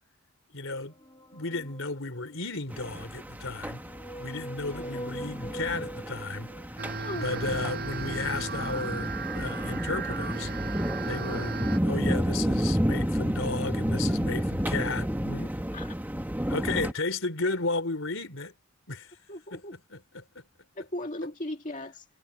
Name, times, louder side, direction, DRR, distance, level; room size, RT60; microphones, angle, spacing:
voice 1, 0.5-0.9 1.3-3.8 4.2-6.5 7.1-10.5 11.1-15.5 16.5-18.5 18.9-19.1 19.5-20.2, left 3 dB, 75° left, 3.6 m, -33 dB
sound 1, 0.9-2.5 3.4-7.2, right 1 dB, 20° left, 3.0 m, -43 dB
sound 2, 2.7-16.9, equal, 10° right, 1.8 m, -31 dB
voice 2, 4.7-5.0 7.0-7.3 15.7-15.9 16.6-16.7 19.3-19.7 20.8-22.0, left 1 dB, 40° left, 2.0 m, -37 dB
sound 3, 6.8-11.8, right 4 dB, 50° right, 7.5 m, -36 dB
head